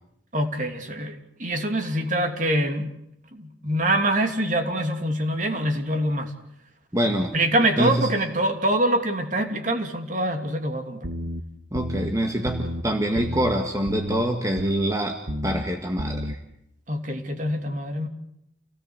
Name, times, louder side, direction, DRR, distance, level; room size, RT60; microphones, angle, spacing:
voice 1, 0.3-3.0 3.3-6.3 7.3-11.0 16.9-18.1, right 1 dB, 40° right, 5 dB, 3.0 m, -25 dB
voice 2, 6.9-7.3 7.8-8.1 11.7-16.4, equal, 15° right, 3 dB, 1.7 m, -25 dB
sound 1, 11.0-11.4 11.7-12.1 12.4-12.8 13.1-13.5 13.9-14.2 14.6-14.9 15.3-15.6 16.0-16.3, equal, 80° right, 2.0 m, -30 dB
29.0 x 18.0 x 8.1 m, 0.79 s
head